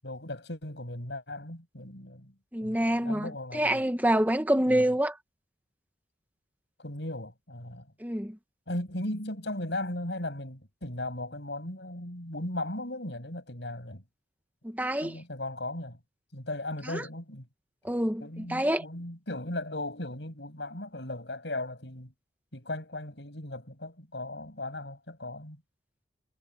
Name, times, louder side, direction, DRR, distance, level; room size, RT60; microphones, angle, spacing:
voice 1, 0.0-2.3 2.6-3.8 4.7-4.9 6.8-7.9 8.7-14.0 15.0-16.0 16.3-17.5 18.2-22.1 22.5-25.6, left 1 dB, 85° left, 7.9 m, -37 dB
voice 2, 2.5-5.2 8.0-8.4 14.6-15.2 16.9-17.0 17.8-18.8, right 1 dB, 10° right, 1.1 m, -27 dB
head